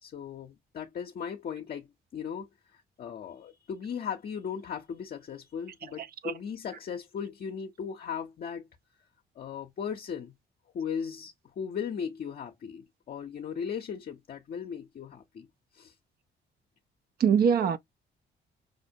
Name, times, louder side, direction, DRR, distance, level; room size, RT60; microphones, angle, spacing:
voice 1, 0.0-8.7 9.4-10.3 10.7-15.5 15.7-15.9, left 7 dB, 50° left, 0.6 m, -37 dB
voice 2, 6.0-6.3 17.2-17.8, right 7 dB, 50° right, 0.5 m, -24 dB
5.0 x 2.1 x 2.6 m
cardioid pair, 90°, 20 cm